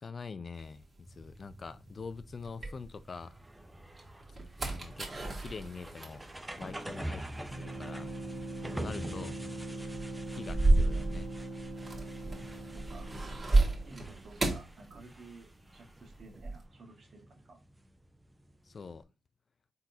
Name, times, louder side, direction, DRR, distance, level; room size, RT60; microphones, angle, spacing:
voice 1, 0.0-3.4 4.3-4.4 4.7-6.3 6.6-8.2 8.7-9.4 10.3-11.3 18.6-19.1, left 5 dB, 50° left, 0.4 m, -45 dB
sound 1, 0.6-3.3 3.8-15.6 15.8-16.6, right 2 dB, 40° right, 1.7 m, -33 dB
sound 2, 1.1-19.0, right 1 dB, 15° right, 0.8 m, -47 dB
sound 3, 7.5-14.1, right 1 dB, 75° right, 1.9 m, -42 dB
voice 2, 12.7-13.2 13.8-17.6, right 3 dB, 60° right, 1.6 m, -53 dB
4.0 x 4.0 x 2.7 m
hypercardioid pair, 45°, 0 cm